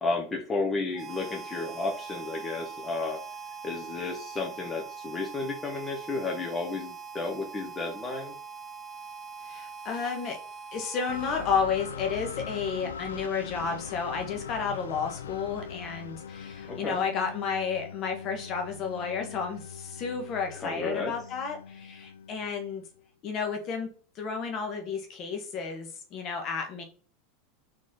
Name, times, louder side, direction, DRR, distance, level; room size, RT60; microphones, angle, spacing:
voice 1, 0.0-3.2 3.6-8.3 16.7-17.0 20.6-21.1, left 3 dB, 20° left, 1 dB, 1.0 m, -32 dB
Harmonica, 0.9-12.0, right 5 dB, 20° right, 0.6 m, -42 dB
voice 2, 9.4-10.4 10.7-22.8 23.2-23.9 24.1-26.8, left 6 dB, 45° left, 3 dB, 1.2 m, -32 dB
sound 1, 11.1-22.9, left 7 dB, 80° left, 0.3 m, -41 dB
4.2 x 3.1 x 3.9 m, 0.40 s
hypercardioid pair, 90°, 0 cm